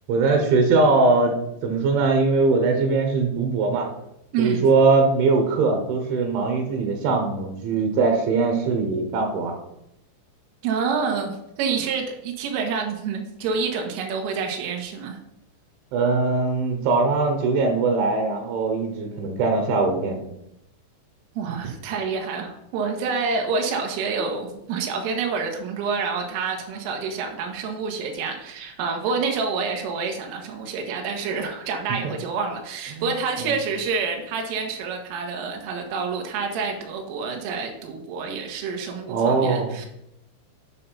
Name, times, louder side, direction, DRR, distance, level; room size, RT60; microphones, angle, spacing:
voice 1, 0.1-1.4 1.6-3.9 4.4-9.5 15.9-20.2 32.0-32.1 32.9-33.1 33.4-33.5 39.1-39.7, right 3 dB, 75° right, 4 dB, 3.4 m, -21 dB
voice 2, 10.6-15.2 21.4-39.9, right 5 dB, 90° right, 3 dB, 3.9 m, -28 dB
9.2 x 5.5 x 5.6 m, 0.82 s
omnidirectional pair, 5.7 m